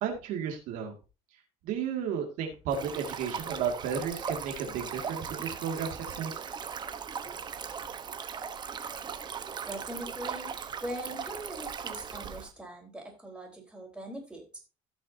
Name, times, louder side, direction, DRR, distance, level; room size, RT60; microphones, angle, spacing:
voice 1, 0.0-0.9 1.6-6.4, right 7 dB, 75° right, 3 dB, 2.3 m, -33 dB
Stream, 2.7-12.5, right 6 dB, 30° right, 1.1 m, -38 dB
voice 2, 9.7-10.5 10.8-14.6, right 1 dB, 5° right, 0 dB, 3.9 m, -41 dB
17.0 x 6.3 x 2.8 m, 0.31 s
cardioid pair, 140°, 14 cm